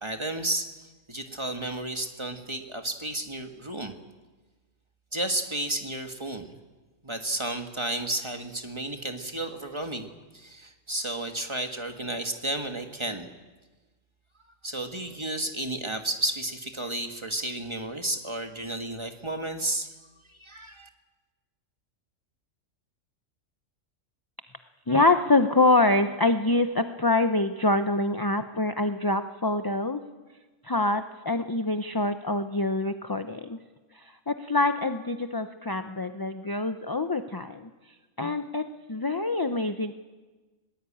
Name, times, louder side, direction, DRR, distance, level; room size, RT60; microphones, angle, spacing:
voice 1, 0.0-3.9 5.1-6.5 7.0-13.3 14.6-19.9 20.3-20.9, right 1 dB, 20° right, 5 dB, 1.6 m, -32 dB
voice 2, 24.9-30.0 30.6-33.6 34.0-37.7 38.2-39.9, left 2 dB, 25° left, 8 dB, 0.6 m, -25 dB
20.5 x 19.0 x 8.7 m, 1.3 s
omnidirectional pair, 1.4 m